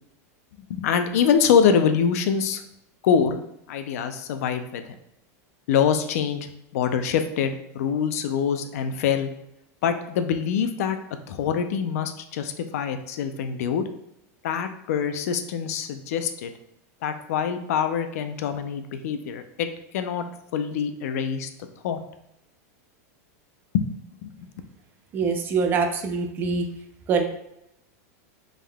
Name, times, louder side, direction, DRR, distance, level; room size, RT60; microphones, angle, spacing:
voice 1, 0.7-2.6 3.0-3.4 3.7-4.9 5.7-6.5 6.7-9.3 9.8-11.0 11.3-13.9 14.4-16.5 17.0-19.7 19.9-20.2 20.5-21.5 21.8-22.0 23.7-24.0 24.2-24.3, left 7 dB, 70° left, 8 dB, 0.5 m, -24 dB
voice 2, 25.1-26.7 27.1-27.2, right 5 dB, 25° right, 5 dB, 0.4 m, -24 dB
5.2 x 3.6 x 2.2 m, 0.81 s
supercardioid pair, 160°, 8 cm